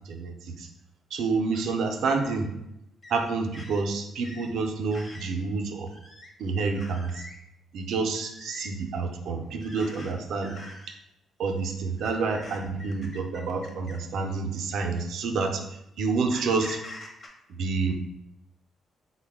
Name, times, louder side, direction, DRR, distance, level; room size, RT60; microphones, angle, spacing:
voice 1, 0.1-0.7 1.1-2.5 3.1-5.9 6.4-7.2 7.7-10.5 11.4-15.6 16.0-16.8 17.6-17.9, right 4 dB, 75° right, 4 dB, 0.5 m, -28 dB
sound 1, 1.5-1.7 2.2-2.4 3.0-3.2 3.5-3.8 4.2-4.5 4.9-5.3 5.9-6.3 6.7-7.3 8.1-8.7 9.6-10.1 10.4-10.9 12.0-14.1 15.0-15.1 16.3-17.3, left 2 dB, 40° left, 0.8 m, -45 dB
3.8 x 2.1 x 3.4 m, 0.84 s
cardioid pair, 90°, 0 cm